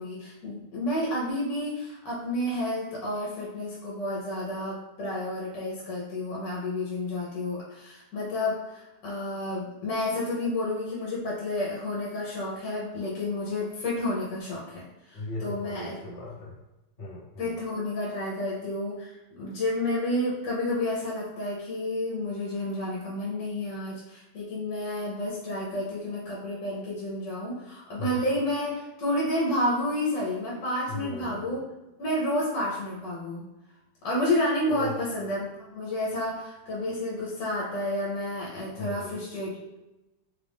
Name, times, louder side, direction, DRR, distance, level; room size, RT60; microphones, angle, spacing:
voice 1, 0.0-15.9 17.4-31.6 32.0-33.4 34.0-39.5, left 1 dB, 75° left, -5 dB, 1.5 m, -30 dB
voice 2, 15.1-16.6 17.0-17.6 28.0-28.3 30.9-31.6 34.7-35.0 38.8-39.3, left 1 dB, 40° left, -6 dB, 1.2 m, -38 dB
3.9 x 2.5 x 3.5 m, 0.98 s
omnidirectional pair, 1.9 m